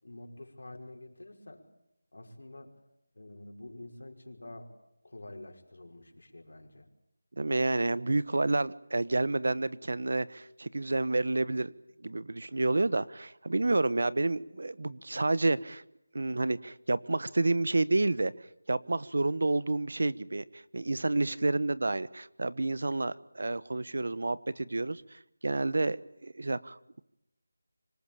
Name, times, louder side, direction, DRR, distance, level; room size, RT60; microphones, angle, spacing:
voice 1, 0.0-1.7 2.1-2.7 3.1-4.7 5.0-6.9, left 1 dB, 80° left, 3 dB, 5.6 m, -47 dB
voice 2, 7.4-11.7 12.0-15.8 16.1-18.3 18.7-26.8, right 2 dB, 70° right, 18 dB, 1.2 m, -29 dB
26.0 x 20.0 x 8.8 m, 0.81 s
figure-of-eight pair, 175°, 0 cm